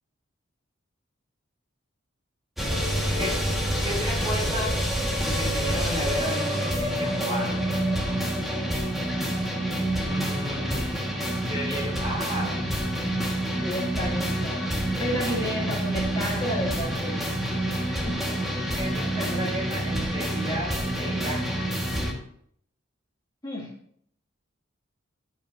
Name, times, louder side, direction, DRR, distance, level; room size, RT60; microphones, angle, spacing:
sound 1, 2.6-22.1, right 1 dB, ahead, 2.0 m, -27 dB
voice 1, 3.8-4.9 5.2-7.6 8.2-8.7 10.0-11.0 11.5-12.6 15.2-15.5 18.5-21.7, equal, 25° right, -3 dB, 3.5 m, -34 dB
voice 2, 13.6-17.4 17.8-18.2 23.4-23.7, equal, 20° left, -6 dB, 3.1 m, -32 dB
12.0 x 8.2 x 2.9 m, 0.65 s
head